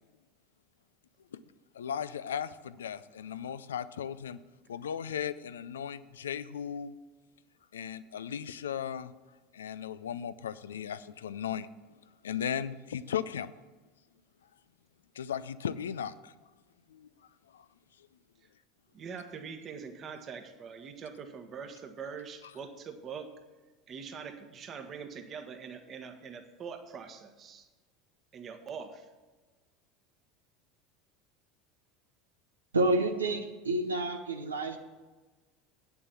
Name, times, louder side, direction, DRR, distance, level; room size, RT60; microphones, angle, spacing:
voice 1, 1.7-4.4 4.7-6.9 7.7-9.1 9.5-11.7 12.2-13.5 15.2-16.3 16.9-17.1 17.5-17.6, left 8 dB, 80° left, 0.4 m, -36 dB
voice 2, 18.9-23.3 23.9-27.7 28.3-29.1, right 6 dB, 40° right, 1.4 m, -43 dB
voice 3, 32.7-34.8, right 2 dB, 90° right, 0.9 m, -29 dB
8.7 x 7.0 x 7.0 m
hypercardioid pair, 75°, 0 cm